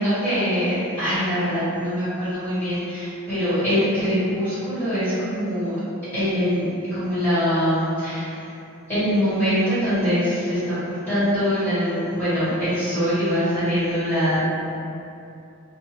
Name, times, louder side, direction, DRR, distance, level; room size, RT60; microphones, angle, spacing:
voice 1, 0.0-5.8 6.1-8.4 8.9-14.4, equal, 10° left, -15 dB, 1.4 m, -23 dB
2.7 x 2.1 x 3.0 m, 2.7 s
head